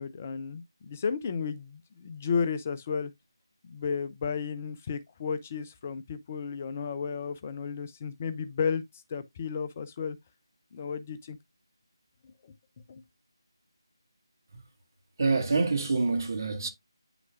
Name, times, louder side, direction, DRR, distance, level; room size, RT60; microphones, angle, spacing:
voice 1, 0.0-3.1 3.6-10.2 10.7-11.4 12.2-12.5 12.9-13.0, left 6 dB, 25° left, 0.5 m, -33 dB
voice 2, 15.2-16.7, right 3 dB, 45° right, 1.9 m, -26 dB
8.9 x 6.0 x 2.4 m
figure-of-eight pair, 160°, 3 cm